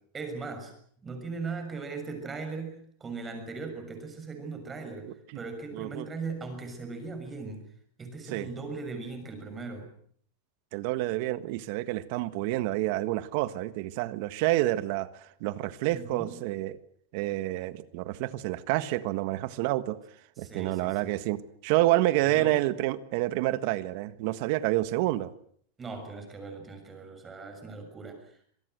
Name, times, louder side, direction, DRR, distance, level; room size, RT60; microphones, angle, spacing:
voice 1, 0.1-0.7 1.0-7.7 8.0-9.9 15.9-16.3 20.4-21.1 22.3-22.6 25.8-28.5, right 4 dB, 15° right, 6 dB, 6.6 m, -39 dB
voice 2, 5.7-6.1 8.3-8.5 10.7-15.1 15.4-16.8 17.1-20.0 20.4-25.3, right 16 dB, 55° right, 14 dB, 1.5 m, -28 dB
26.0 x 18.5 x 8.0 m, 0.62 s
supercardioid pair, 150°, 0 cm